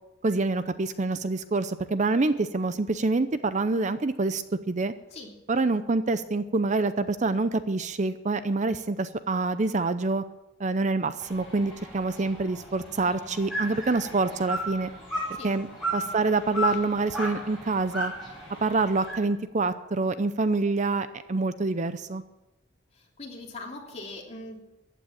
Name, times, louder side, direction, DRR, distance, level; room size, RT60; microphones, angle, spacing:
voice 1, 0.2-4.9 5.5-10.2 10.6-14.9 15.4-15.7 15.9-18.1 18.6-22.2, right 3 dB, 40° right, 12 dB, 0.6 m, -26 dB
sound 1, 11.2-19.1, equal, ahead, 7.6 m, -35 dB
voice 2, 22.9-24.6, left 2 dB, 35° left, -1 dB, 3.3 m, -41 dB
14.5 x 9.2 x 8.9 m, 0.97 s
head